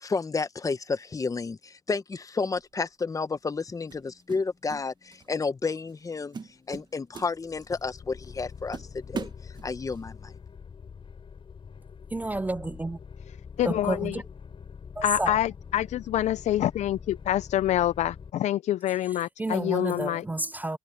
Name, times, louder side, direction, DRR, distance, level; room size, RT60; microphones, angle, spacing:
voice 1, 0.0-6.4 6.7-10.3, left 4 dB, 25° left, 1.0 m, -31 dB
sound 1, 2.6-2.8 3.9-4.9 5.1-5.4 5.9-6.1 6.3-7.8 8.3-8.4 8.7-10.0, right 5 dB, 35° right, 1.6 m, -40 dB
sound 2, 7.4-18.3, left 6 dB, 40° left, 6.4 m, -45 dB
voice 2, 12.1-13.0 13.6-14.2 15.0-15.3 19.4-20.8, right 2 dB, 10° right, 0.4 m, -30 dB
voice 3, 13.3-14.2 15.0-20.3, left 12 dB, 60° left, 0.4 m, -27 dB
cardioid pair, 100°, 13 cm